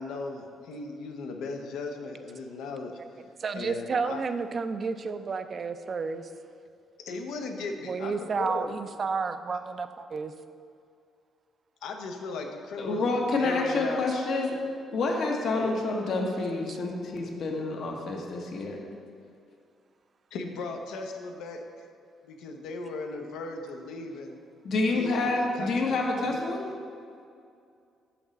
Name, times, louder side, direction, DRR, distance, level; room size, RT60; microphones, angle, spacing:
voice 1, 0.0-2.9 3.5-4.2 7.1-8.7 11.8-13.1 13.4-14.1 15.6-15.8 20.3-21.9 22.2-24.4 24.9-26.0 26.3-26.4, left 3 dB, 90° left, 3 dB, 0.7 m, -37 dB
voice 2, 3.4-6.3 7.8-10.3 16.7-16.8, right 5 dB, 45° right, 10 dB, 0.4 m, -31 dB
voice 3, 12.8-14.6 14.9-18.8 24.6-26.6, left 3 dB, 65° left, 1 dB, 1.0 m, -28 dB
6.3 x 5.9 x 4.0 m, 2.4 s
cardioid pair, 90°, 0 cm